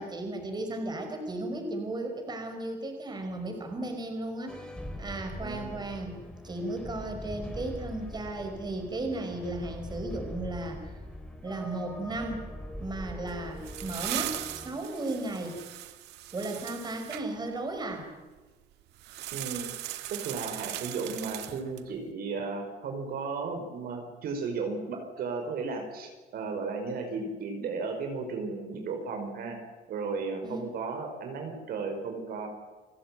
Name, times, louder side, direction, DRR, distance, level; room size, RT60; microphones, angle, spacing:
voice 1, 0.0-4.7 5.0-6.2 6.4-10.8 11.4-12.4 12.8-15.6 16.3-18.1 30.4-30.6, right 2 dB, 25° right, 5 dB, 5.5 m, -35 dB
sound 1, 4.5-14.8, equal, 5° left, 4.1 m, -42 dB
voice 2, 5.4-5.9 19.3-19.7 20.1-29.6 29.9-32.5, right 4 dB, 65° right, 4 dB, 5.1 m, -35 dB
sound 2, 13.3-17.2 19.0-21.9, right 14 dB, 85° right, 1.6 m, -38 dB
29.0 x 16.5 x 9.2 m, 1.2 s
cardioid pair, 110°, 17 cm